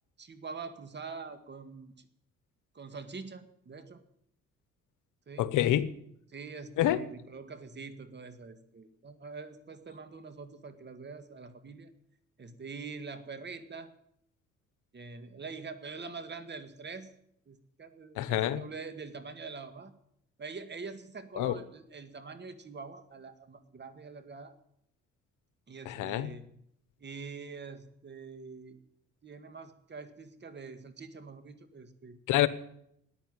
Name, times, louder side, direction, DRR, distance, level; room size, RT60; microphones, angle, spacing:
voice 1, 0.2-2.1 2.7-4.0 5.3-5.5 6.3-11.9 12.4-13.9 14.9-17.1 17.5-19.9 20.4-24.5 25.7-26.5 27.0-28.8 29.2-32.2, right 4 dB, 35° right, 1.9 m, -44 dB
voice 2, 5.4-5.9 6.8-7.0 18.2-18.6 21.4-21.6 25.8-26.3 32.3-32.5, left 13 dB, 85° left, 1.0 m, -27 dB
14.0 x 9.9 x 9.7 m
cardioid pair, 90°, 30 cm